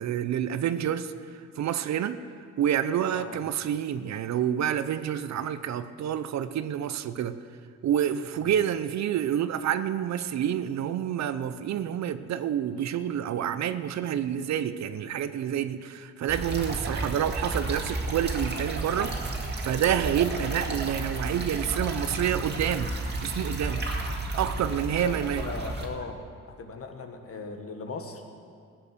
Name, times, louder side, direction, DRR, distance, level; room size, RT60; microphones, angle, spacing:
voice 1, 0.0-2.2 2.6-7.4 7.8-19.2 19.6-22.9 23.2-23.8 24.4-25.5, right 10 dB, 65° right, 12 dB, 0.7 m, -28 dB
sound 1, 16.3-25.9, right 2 dB, 35° right, 2.1 m, -32 dB
voice 2, 20.1-20.8 24.7-26.3 26.6-28.2, left 3 dB, 50° left, 4 dB, 1.7 m, -39 dB
15.0 x 7.8 x 6.8 m, 2.2 s
cardioid pair, 90°, 30 cm